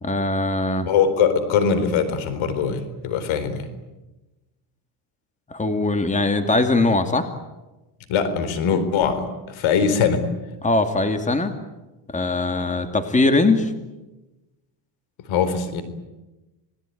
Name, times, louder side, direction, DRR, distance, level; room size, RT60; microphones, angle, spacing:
voice 1, 0.0-0.9 5.5-7.3 10.6-11.5 12.1-13.7, left 2 dB, 15° left, 7 dB, 2.5 m, -21 dB
voice 2, 0.9-3.7 8.1-10.2 15.3-15.8, left 6 dB, 70° left, 12 dB, 4.2 m, -21 dB
29.0 x 20.0 x 9.4 m, 1.1 s
cardioid pair, 105°, 50 cm